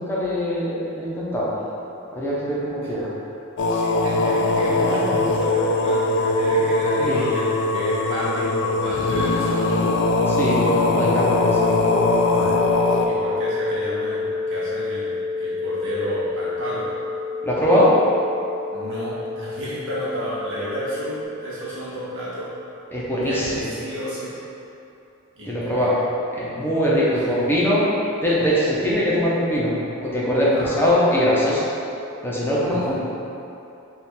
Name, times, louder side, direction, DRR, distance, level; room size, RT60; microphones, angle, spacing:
voice 1, 0.0-1.5 2.1-3.1 7.0-7.2 10.3-11.8 17.4-17.9 22.9-23.7 25.5-26.0 26.3-27.9 28.2-29.7 30.0-31.7 32.2-32.9, equal, 10° left, -7 dB, 0.6 m, -22 dB
sound 1, 3.6-13.1, left 2 dB, 55° left, 0.3 m, -21 dB
voice 2, 3.6-9.8 12.4-12.8 13.0-16.9 18.7-22.5 23.2-24.3 25.4-25.9 27.2-27.4 30.5-31.1 32.6-32.9, equal, 60° right, -9 dB, 1.0 m, -30 dB
sound 2, 11.3-21.2, left 4 dB, 40° right, 0.7 m, -28 dB
3.5 x 2.4 x 4.3 m, 2.8 s
head